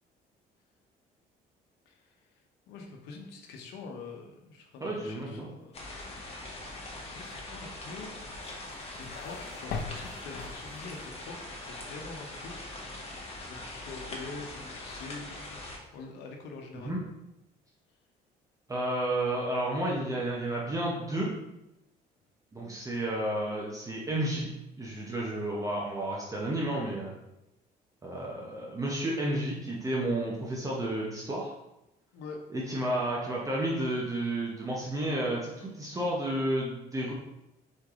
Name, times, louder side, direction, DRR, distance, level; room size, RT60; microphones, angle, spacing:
voice 1, 2.7-5.8 7.0-8.2 8.9-12.8 13.5-15.6 15.9-16.9 32.1-32.4, left 4 dB, 90° left, 2 dB, 0.8 m, -45 dB
voice 2, 4.8-5.5 16.8-17.0 18.7-21.3 22.5-24.5 24.8-27.1 28.0-31.5 32.5-37.1, right 1 dB, 20° right, -4 dB, 0.8 m, -31 dB
sound 1, 5.7-15.8, left 2 dB, 35° left, 1.1 m, -42 dB
sound 2, 8.4-11.1, left 5 dB, 65° left, 0.5 m, -40 dB
4.2 x 3.3 x 3.6 m, 0.90 s
cardioid pair, 110°, 17 cm